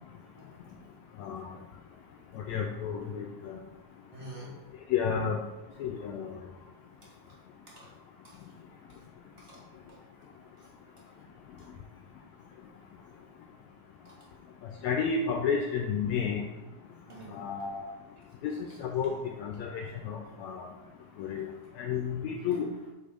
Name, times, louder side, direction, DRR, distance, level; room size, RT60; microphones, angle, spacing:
voice 1, 0.2-0.6 4.1-4.6 7.0-7.4 7.7-7.9 8.2-8.4 8.9-9.0 9.4-9.6 9.9-10.0 10.6-10.7 14.0-14.2 17.1-17.5, right 1 dB, 30° right, -4 dB, 1.4 m, -48 dB
voice 2, 1.2-1.5 2.4-3.6 4.9-5.4 5.8-6.3 14.8-16.4 17.3-17.9 18.4-19.1 19.4-20.7 21.2-21.5 21.8-22.7, left 6 dB, 80° left, 3 dB, 1.6 m, -31 dB
5.4 x 4.2 x 5.1 m, 1.1 s
omnidirectional pair, 3.6 m